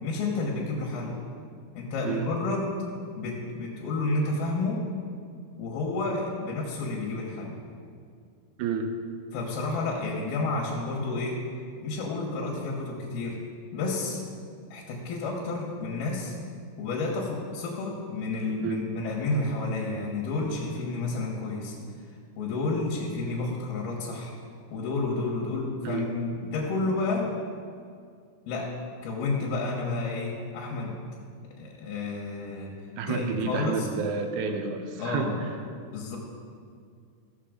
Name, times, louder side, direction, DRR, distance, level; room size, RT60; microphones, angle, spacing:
voice 1, 0.0-1.2 1.8-2.7 3.2-4.8 5.6-7.5 9.3-11.4 11.8-13.4 13.7-14.2 14.7-16.4 16.8-21.7 22.4-24.3 24.7-27.3 28.5-28.7 29.0-30.9 31.6-32.7 33.1-33.9 35.0-35.4 35.9-36.2, left 3 dB, 85° left, -3 dB, 3.2 m, -30 dB
voice 2, 8.6-8.9 18.6-18.8 25.8-26.1 33.0-35.5, right 5 dB, 75° right, 6 dB, 1.8 m, -30 dB
15.0 x 6.6 x 5.1 m, 2.2 s
omnidirectional pair, 4.2 m